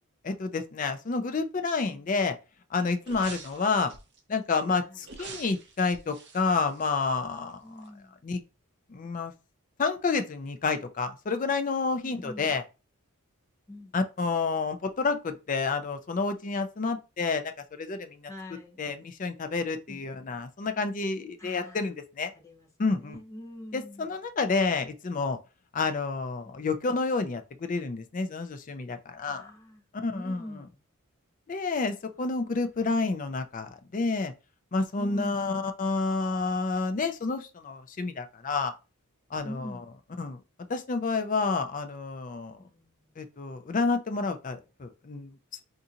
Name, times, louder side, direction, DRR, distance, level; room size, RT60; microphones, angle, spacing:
voice 1, 0.2-2.4 2.7-3.9 4.3-7.6 8.2-8.4 8.9-9.3 9.8-12.6 13.9-17.4 17.8-18.2 18.8-22.3 22.8-23.2 23.7-25.4 25.7-29.5 30.0-30.4 31.5-34.3 34.7-38.7 39.3-39.8 40.2-40.4 40.7-42.6 43.2-45.3, left 4 dB, 35° left, 0.4 m, -29 dB
sound 1, 3.0-4.2 5.0-7.5 7.8-7.9, right 4 dB, 50° right, 0.6 m, -46 dB
voice 2, 7.6-8.2 12.0-12.5 13.7-14.0 18.2-18.8 19.9-20.0 21.4-21.9 22.3-24.1 26.4-26.6 29.2-29.8 30.1-30.8 32.1-32.5 35.0-35.4 39.4-39.9 42.6-43.1, left 1 dB, 15° left, 0.8 m, -44 dB
3.7 x 2.5 x 2.8 m
head